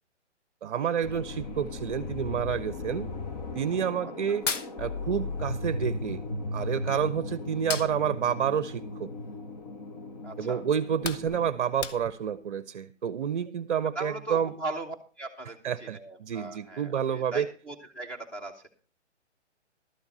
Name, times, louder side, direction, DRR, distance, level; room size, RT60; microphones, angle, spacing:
voice 1, 0.6-3.1 3.5-4.5 4.8-6.2 6.5-9.1 10.4-14.5 15.6-17.5, right 8 dB, 45° right, 15 dB, 0.7 m, -29 dB
sound 1, 1.0-11.5, left 2 dB, 35° left, 1.0 m, -36 dB
Hands, 4.3-5.6 5.8-7.1 7.5-9.8 10.2-10.4 10.7-12.4, left 5 dB, 85° left, 1.1 m, -37 dB
voice 2, 10.2-10.6 13.9-18.7, right 2 dB, 5° left, 2 dB, 0.7 m, -39 dB
12.5 x 7.1 x 5.4 m, 0.37 s
hypercardioid pair, 150°, 36 cm